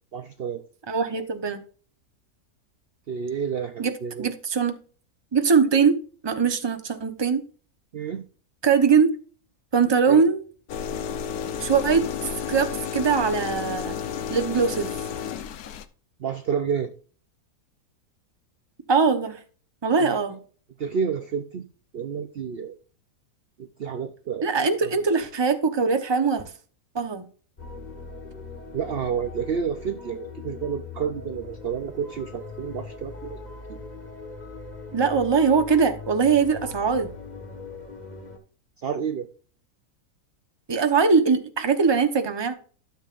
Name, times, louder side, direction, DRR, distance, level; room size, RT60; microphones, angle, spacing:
voice 1, 0.1-0.6 3.1-4.3 7.9-8.3 10.1-10.3 16.2-16.9 20.0-20.2 20.8-21.7 21.9-22.7 23.6-24.5 24.8-25.0 28.7-33.4 33.7-33.8 38.8-39.3, right 7 dB, 55° right, 8 dB, 0.7 m, -30 dB
voice 2, 0.9-1.6 3.8-3.9 4.2-4.7 5.3-5.9 6.2-7.4 8.6-9.1 9.7-10.4 11.6-12.1 12.5-14.0 14.3-14.9 18.9-19.4 19.8-20.4 24.4-26.4 26.9-27.2 34.9-37.1 40.7-42.6, right 5 dB, 20° right, 7 dB, 0.8 m, -21 dB
sound 1, 10.7-15.9, left 7 dB, 80° left, 1.3 m, -32 dB
sound 2, 27.6-38.4, left 4 dB, 30° left, 1.5 m, -40 dB
13.0 x 7.1 x 2.5 m, 0.41 s
omnidirectional pair, 1.6 m